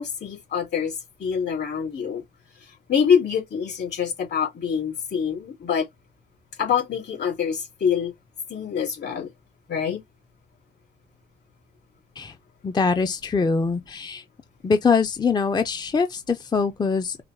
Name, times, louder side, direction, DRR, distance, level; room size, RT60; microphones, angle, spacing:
voice 1, 0.0-2.2 2.5-5.9 6.6-8.1 8.5-9.3 9.7-10.0, left 7 dB, 60° left, 2.7 m, -25 dB
voice 2, 12.6-14.2 14.6-17.2, left 5 dB, 20° left, 0.5 m, -23 dB
4.8 x 2.2 x 3.1 m
cardioid pair, 90°, 20 cm